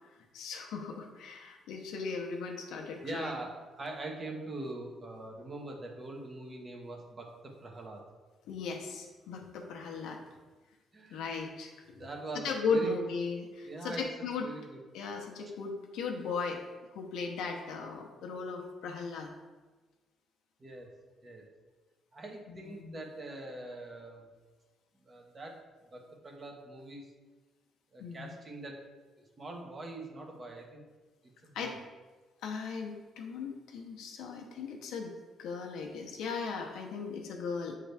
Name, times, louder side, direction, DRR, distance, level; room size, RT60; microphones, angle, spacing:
voice 1, 0.3-3.3 8.5-10.2 11.1-12.0 12.4-14.5 14.9-16.6 16.9-19.3 22.6-22.9 28.0-28.3 31.5-31.7 32.4-35.1 35.4-37.7, left 4 dB, 90° left, 2 dB, 0.9 m, -37 dB
voice 2, 3.0-8.0 10.9-11.5 12.0-13.0 13.6-14.8 20.6-20.9 21.2-21.5 22.1-24.3 24.9-25.6 25.9-27.1 27.9-28.8 29.2-30.8 31.4-31.8, right 2 dB, 35° right, 1 dB, 1.3 m, -43 dB
8.0 x 3.7 x 3.4 m, 1.3 s
cardioid pair, 90°, 0 cm